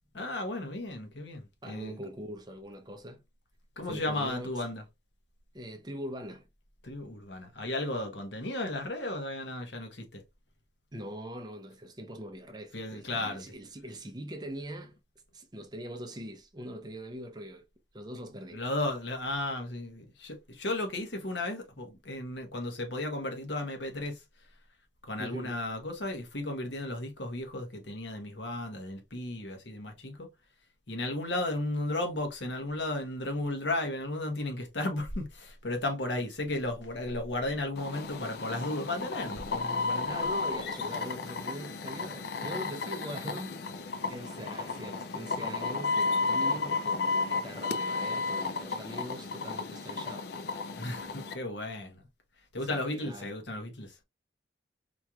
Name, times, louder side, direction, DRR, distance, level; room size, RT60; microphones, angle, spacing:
voice 1, 0.1-2.0 3.8-4.8 6.8-10.2 12.7-13.4 18.5-24.2 25.0-30.3 30.9-40.3 50.7-52.0 52.5-54.0, left 2 dB, 75° left, 1.2 m, -34 dB
voice 2, 1.6-3.2 3.8-4.5 5.5-6.5 10.9-15.0 15.3-17.6 17.9-18.6 25.2-25.6 40.1-50.3 52.6-53.3, equal, 20° right, 0.6 m, -42 dB
sound 1, 37.8-51.3, left 4 dB, 60° left, 0.4 m, -33 dB
4.4 x 3.0 x 2.3 m
head